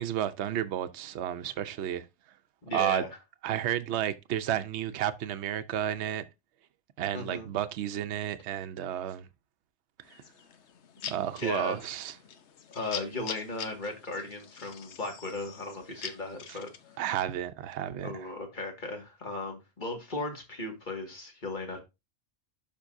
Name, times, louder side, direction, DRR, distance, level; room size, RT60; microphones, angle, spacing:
voice 1, 0.0-2.1 2.7-3.0 3.4-6.2 7.0-9.3 10.1-10.2 11.1-12.1 16.5-16.6 17.0-18.3, right 11 dB, 70° right, 0.9 m, -32 dB
voice 2, 2.6-3.1 7.1-7.5 11.0-11.8 12.7-16.7 18.0-21.8, left 2 dB, 40° left, 2.1 m, -37 dB
sound 1, 10.0-17.0, left 7 dB, 70° left, 1.1 m, -44 dB
12.0 x 5.2 x 2.6 m
omnidirectional pair, 1.2 m